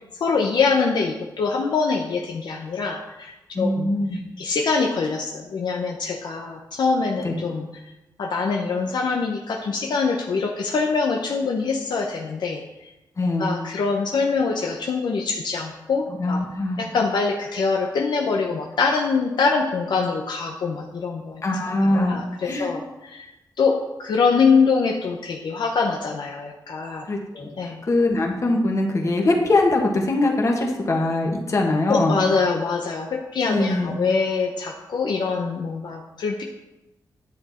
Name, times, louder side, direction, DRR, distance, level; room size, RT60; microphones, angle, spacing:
voice 1, 0.1-7.7 8.2-12.9 13.4-16.4 16.8-21.4 21.9-23.3 23.6-27.1 27.6-27.8 31.9-36.4, left 4 dB, 75° left, 1 dB, 0.9 m, -24 dB
voice 2, 3.5-4.2 7.2-7.3 13.2-13.5 16.2-16.8 21.4-22.7 27.1-32.1 33.5-33.9, left 2 dB, 45° left, 1 dB, 1.8 m, -22 dB
10.5 x 7.7 x 4.3 m, 0.99 s
wide cardioid pair, 110°, 7 cm